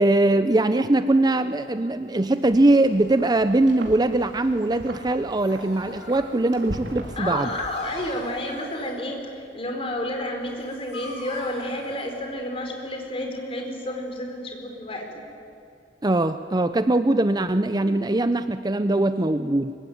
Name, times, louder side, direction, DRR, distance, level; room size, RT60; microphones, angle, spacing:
voice 1, 0.0-7.5 16.0-19.8, right 2 dB, 20° right, 10 dB, 0.6 m, -21 dB
Wind, 2.1-8.6, right 1 dB, 75° right, 3.7 m, -40 dB
Dog, 5.2-12.9, left 2 dB, 60° left, 7.6 m, -44 dB
voice 2, 7.2-15.1, left 1 dB, 30° left, 3 dB, 4.3 m, -30 dB
24.5 x 22.5 x 9.3 m, 2.5 s
head